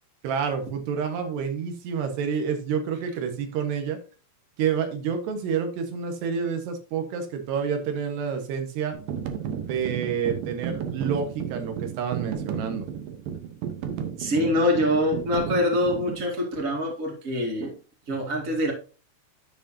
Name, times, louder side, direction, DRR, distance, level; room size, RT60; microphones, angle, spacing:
voice 1, 0.2-4.0 4.6-9.0 9.6-12.9, right 7 dB, 65° right, 5 dB, 3.2 m, -28 dB
sound 1, 8.9-16.3, right 8 dB, 85° right, 2.0 m, -33 dB
voice 2, 14.2-17.7 18.1-18.7, left 1 dB, 50° right, 0 dB, 0.9 m, -24 dB
13.0 x 5.3 x 2.8 m, 0.36 s
omnidirectional pair, 5.6 m